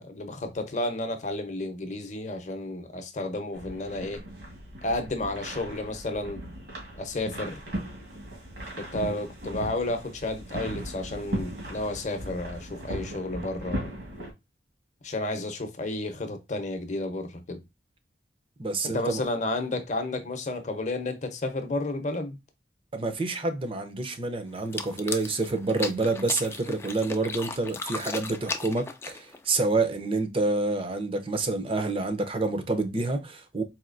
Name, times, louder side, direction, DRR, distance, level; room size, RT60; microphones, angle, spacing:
voice 1, 0.0-4.2 4.8-6.5 7.0-7.6 8.8-13.9 15.0-17.6 18.8-22.4, left 2 dB, 40° left, 0.7 m, -32 dB
sound 1, 3.5-14.3, right 1 dB, 75° right, 1.7 m, -38 dB
voice 2, 18.6-19.2 22.9-33.6, right 3 dB, 30° right, 0.6 m, -28 dB
sound 2, 24.6-29.4, left 4 dB, 15° left, 0.3 m, -36 dB
4.2 x 2.7 x 2.5 m
head